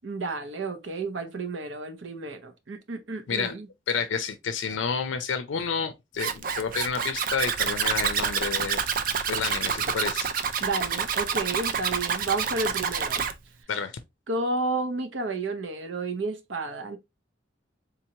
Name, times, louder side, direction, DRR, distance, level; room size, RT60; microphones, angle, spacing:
voice 1, 0.0-3.7 10.6-13.3 14.3-17.0, right 3 dB, 80° right, 0.7 m, -31 dB
voice 2, 3.9-8.8 9.3-10.3 13.7-13.9, left 6 dB, 85° left, 0.4 m, -30 dB
Zipper (clothing), 6.2-13.3, right 6 dB, 45° right, 0.4 m, -28 dB
3.9 x 2.9 x 2.7 m
head